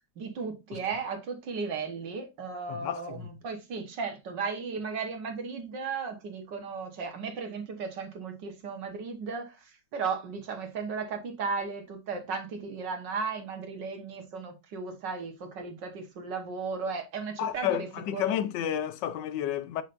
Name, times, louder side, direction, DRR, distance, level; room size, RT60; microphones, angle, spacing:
voice 1, 0.2-17.9 18.1-18.3, right 5 dB, 70° right, 1.9 m, -35 dB
voice 2, 2.7-3.3 17.4-19.8, left 11 dB, 75° left, 1.3 m, -31 dB
7.1 x 5.6 x 2.6 m
omnidirectional pair, 2.0 m